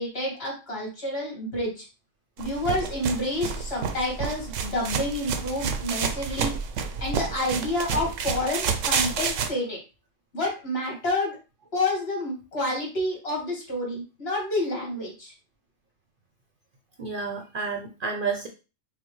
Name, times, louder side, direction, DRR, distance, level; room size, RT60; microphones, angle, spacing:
voice 1, 0.0-1.9 2.4-6.5 7.0-9.8 10.3-11.4 11.7-15.3, left 1 dB, 55° left, -3 dB, 2.0 m, -29 dB
sound 1, 2.4-9.5, right 6 dB, 80° right, 0.9 m, -29 dB
voice 2, 17.0-18.5, right 5 dB, 50° right, 2 dB, 0.7 m, -30 dB
5.7 x 2.1 x 3.1 m, 0.31 s
omnidirectional pair, 1.3 m